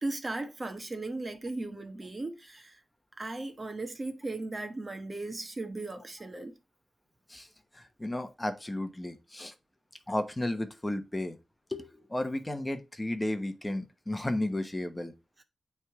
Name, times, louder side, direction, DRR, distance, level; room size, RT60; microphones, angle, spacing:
voice 1, 0.0-2.8 3.2-6.5, right 2 dB, 35° right, 1.1 m, -37 dB
voice 2, 7.7-9.5 10.1-11.4 11.7-15.1, left 1 dB, 15° left, 1.0 m, -33 dB
8.9 x 3.5 x 3.6 m
cardioid pair, 75°, 0 cm